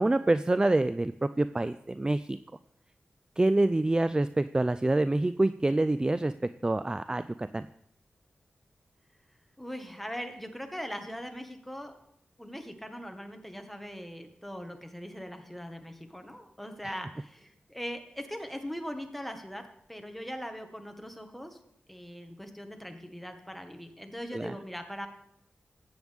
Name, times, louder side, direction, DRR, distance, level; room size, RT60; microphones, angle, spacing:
voice 1, 0.0-2.4 3.4-6.3 6.6-7.7 16.8-16.9 24.3-24.6, right 2 dB, 20° right, 13 dB, 0.3 m, -26 dB
voice 2, 9.6-11.9 12.4-19.6 19.9-21.6 21.9-25.1, equal, 5° left, 5 dB, 1.6 m, -40 dB
14.0 x 8.8 x 3.6 m, 0.73 s
cardioid pair, 55°, 4 cm